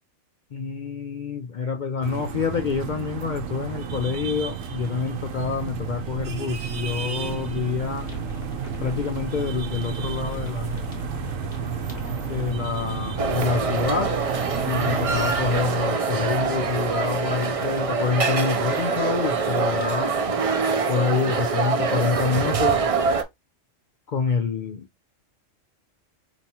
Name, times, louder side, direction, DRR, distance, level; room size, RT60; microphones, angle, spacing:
voice 1, 0.5-8.1 8.8-10.7 12.3-14.1 14.7-20.1 20.9-22.8 24.1-24.9, left 5 dB, 65° left, 0.4 m, -27 dB
sound 1, 2.0-15.8, right 6 dB, 85° right, 1.1 m, -32 dB
sound 2, 7.9-19.9, right 4 dB, 35° left, 1.2 m, -41 dB
sound 3, 13.2-23.2, right 4 dB, 65° right, 0.3 m, -24 dB
4.5 x 2.9 x 2.7 m
omnidirectional pair, 1.3 m